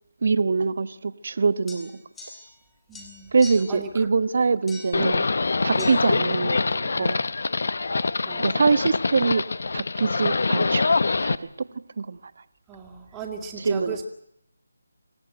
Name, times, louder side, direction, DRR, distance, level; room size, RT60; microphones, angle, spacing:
voice 1, 0.2-1.9 3.3-5.2 5.6-7.2 8.4-9.4 9.7-10.9 11.2-11.7 12.0-12.2 13.6-14.0, right 4 dB, 55° right, 13 dB, 1.3 m, -24 dB
sound 1, 1.7-2.6 2.9-3.8 4.7-5.1 5.8-6.0, left 4 dB, 10° left, 3.6 m, -43 dB
voice 2, 2.9-3.3 3.7-4.1 5.7-6.0 8.2-8.8 12.7-14.0, right 6 dB, 10° right, -2 dB, 2.4 m, -37 dB
Livestock farm animals working animals, 4.9-11.3, left 3 dB, 65° left, 1.2 m, -24 dB
26.0 x 16.5 x 9.0 m, 0.77 s
figure-of-eight pair, 160°, 0 cm